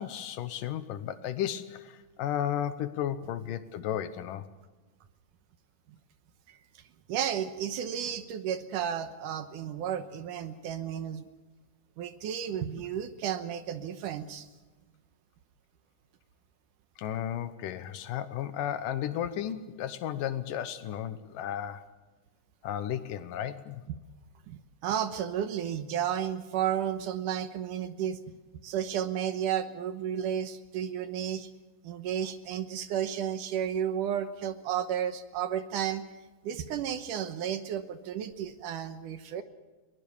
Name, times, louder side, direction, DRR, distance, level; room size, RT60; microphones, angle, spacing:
voice 1, 0.0-4.5 17.0-21.9 22.6-23.8, left 10 dB, 70° left, 12 dB, 2.5 m, -34 dB
voice 2, 6.5-6.8 7.1-11.2 12.0-14.5 23.9-24.0 24.5-28.2 28.6-31.5 31.8-36.0 36.4-39.4, right 9 dB, 70° right, 10 dB, 2.4 m, -32 dB
22.0 x 20.5 x 7.1 m, 1.2 s
omnidirectional pair, 4.2 m